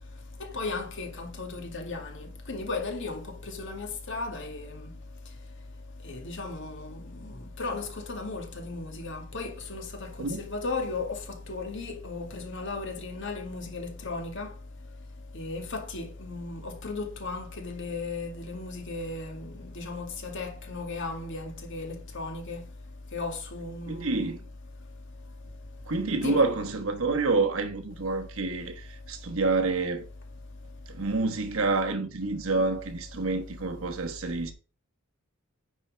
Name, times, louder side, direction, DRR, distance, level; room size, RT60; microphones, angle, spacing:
voice 1, 0.4-4.9 6.0-14.5 15.3-22.6 23.1-24.4 26.2-26.4, left 3 dB, 60° left, 2.1 m, -36 dB
voice 2, 23.9-24.4 25.9-30.0 30.9-34.5, right 3 dB, 70° right, 1.2 m, -28 dB
9.9 x 4.5 x 5.0 m
head